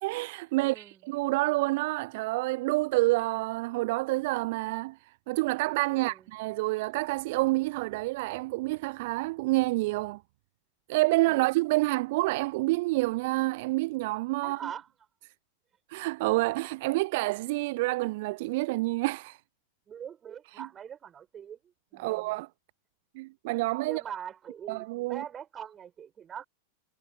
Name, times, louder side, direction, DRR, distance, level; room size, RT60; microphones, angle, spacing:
voice 1, 0.0-10.2 10.9-14.6 15.9-19.4 20.6-20.7 22.0-22.5 23.2-24.0 24.7-25.2, right 21 dB, 50° right, 0.3 m, -28 dB
voice 2, 0.6-1.0 5.9-6.2 11.2-11.5 14.4-14.9 19.9-22.3 23.8-26.4, right 8 dB, 25° right, 5.5 m, -43 dB
figure-of-eight pair, 90°, 0 cm